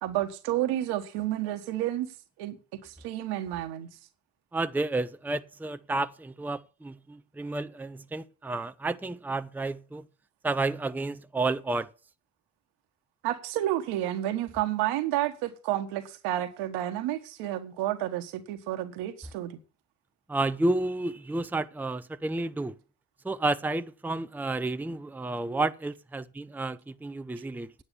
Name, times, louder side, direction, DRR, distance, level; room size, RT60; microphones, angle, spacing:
voice 1, 0.0-2.1 2.4-2.6 2.8-3.9 13.2-19.6, right 13 dB, 75° right, 1.6 m, -30 dB
voice 2, 4.5-10.0 10.4-11.9 20.3-22.7 23.2-27.7, right 2 dB, 5° right, 0.7 m, -31 dB
9.8 x 8.8 x 7.1 m
hypercardioid pair, 50°, 40 cm